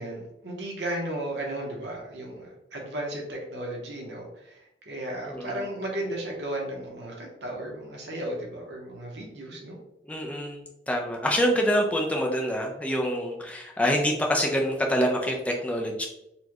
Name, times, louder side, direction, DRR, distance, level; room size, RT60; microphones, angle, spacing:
voice 1, 0.0-9.8, right 1 dB, 85° right, -1 dB, 0.9 m, -35 dB
voice 2, 5.2-5.6 10.1-16.1, equal, 10° left, 1 dB, 0.4 m, -26 dB
4.2 x 2.2 x 2.9 m, 0.85 s
head